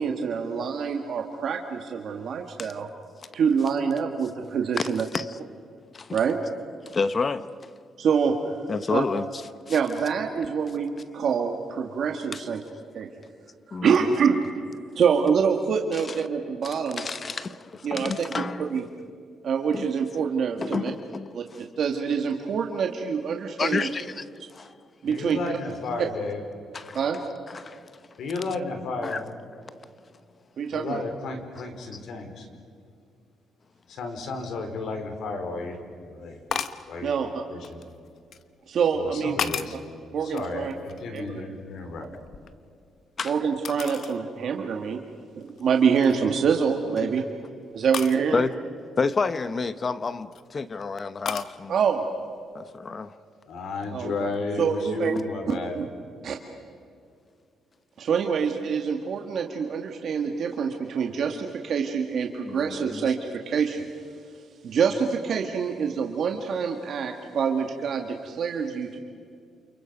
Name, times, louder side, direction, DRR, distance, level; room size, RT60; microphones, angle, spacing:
voice 1, 0.0-2.9 3.3-5.1 6.1-6.4 8.0-8.3 8.9-9.0 9.7-12.6 12.9-13.1 13.8-14.4 15.0-17.1 17.8-18.3 18.7-18.8 19.4-20.9 21.3-21.4 21.8-23.9 25.0-25.4 26.9-27.2 30.6-31.0 37.0-37.3 38.7-39.4 40.1-40.7 41.1-41.4 43.2-45.0 45.4-47.2 47.7-48.4 51.7-52.1 53.9-55.2 55.5-55.8 56.2-56.4 58.0-63.9 64.6-69.0, right 6 dB, 55° right, 1.9 m, -26 dB
voice 2, 4.8-5.4 5.9-6.2 6.9-7.7 8.7-9.2 9.7-9.8 12.3-12.4 13.7-14.1 16.1-16.2 16.6-18.8 19.7-19.9 20.6-21.6 23.6-24.3 24.5-24.7 26.7-27.0 27.5-27.8 29.0-29.2 43.2-43.4 47.0-47.1 48.3-48.5 49.0-51.7 52.5-53.1 62.5-63.1, left 4 dB, 30° left, 0.8 m, -30 dB
voice 3, 25.1-26.4 28.2-29.2 30.7-32.5 33.9-36.4 36.9-37.1 37.5-37.8 38.9-39.8 40.2-42.1 53.5-55.8, left 3 dB, 70° left, 4.2 m, -33 dB
sound 1, 36.5-36.9 37.6-38.4 39.0-39.9 40.3-41.4 41.7-43.0 43.6-44.2 44.7-44.8 45.4-45.6 46.0-46.4 47.9-48.2 49.9-50.4 51.2-51.5, left 7 dB, 55° left, 1.1 m, -34 dB
29.0 x 29.0 x 5.3 m
cardioid pair, 135°, 0 cm